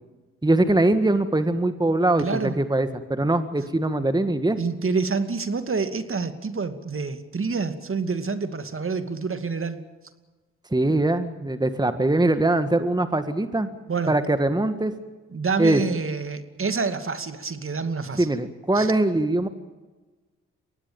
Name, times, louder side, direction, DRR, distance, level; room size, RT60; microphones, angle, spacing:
voice 1, 0.4-4.6 10.7-13.7 14.1-14.9 15.6-15.8 18.2-19.5, right 2 dB, 15° right, 9 dB, 1.8 m, -22 dB
voice 2, 2.2-2.5 4.6-9.8 13.9-14.1 15.3-18.3 18.8-18.9, right 4 dB, 40° right, 9 dB, 2.4 m, -27 dB
23.5 x 18.0 x 8.9 m, 1.2 s
hypercardioid pair, 45°, 32 cm